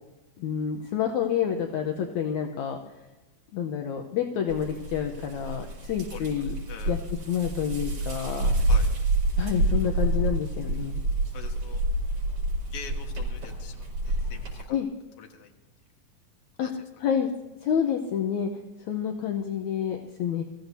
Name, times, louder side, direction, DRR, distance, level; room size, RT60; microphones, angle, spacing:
voice 1, 0.4-2.8 3.5-6.5 6.9-7.0 7.3-8.7 9.4-11.0 14.7-14.9 16.6-16.7 17.0-17.3 17.6-18.5 18.9-20.4, left 8 dB, 70° left, 3 dB, 2.0 m, -28 dB
sound 1, 4.5-14.6, right 2 dB, 60° right, 6.5 m, -28 dB
voice 2, 11.3-11.8 12.7-14.8 15.2-15.5 16.6-16.7, left 6 dB, 50° left, 3 dB, 2.1 m, -44 dB
24.5 x 15.0 x 2.8 m, 1.1 s
omnidirectional pair, 4.0 m